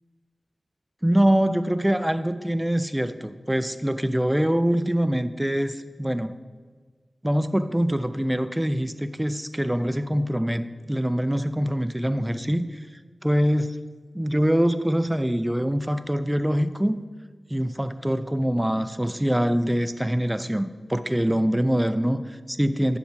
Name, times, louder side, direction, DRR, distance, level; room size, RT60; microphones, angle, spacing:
voice 1, 1.0-6.4 7.2-12.8 13.2-13.8 14.1-17.0 17.5-23.0, equal, 10° right, 11 dB, 0.4 m, -24 dB
7.3 x 6.0 x 5.6 m, 1.5 s
wide cardioid pair, 75°, 0 cm